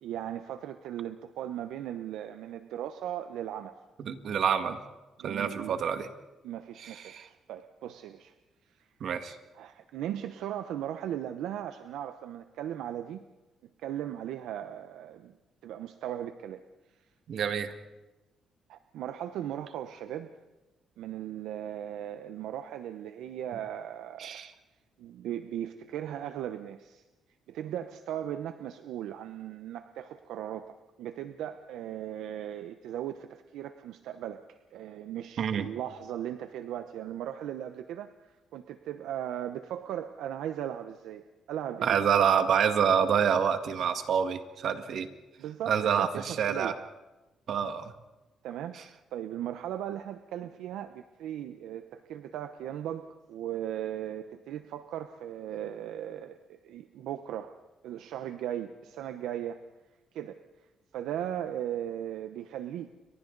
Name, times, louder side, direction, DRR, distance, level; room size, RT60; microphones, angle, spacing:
voice 1, 0.0-3.7 5.2-5.8 6.4-8.3 8.7-8.9 9.5-13.2 13.8-15.4 15.6-16.6 18.7-20.3 21.0-24.4 25.0-27.0 27.5-34.4 34.7-42.0 45.4-46.8 48.4-57.6 57.8-59.6 60.1-60.4 60.9-62.9, right 11 dB, 85° right, 9 dB, 0.9 m, -37 dB
voice 2, 4.0-4.8 5.2-6.1 6.8-7.3 9.0-9.4 17.3-17.7 24.2-24.5 35.4-35.7 41.8-45.1 45.7-46.7 47.5-47.9, right 7 dB, 65° right, 8 dB, 1.9 m, -27 dB
30.0 x 24.5 x 4.0 m, 1.1 s
cardioid pair, 90°, 0 cm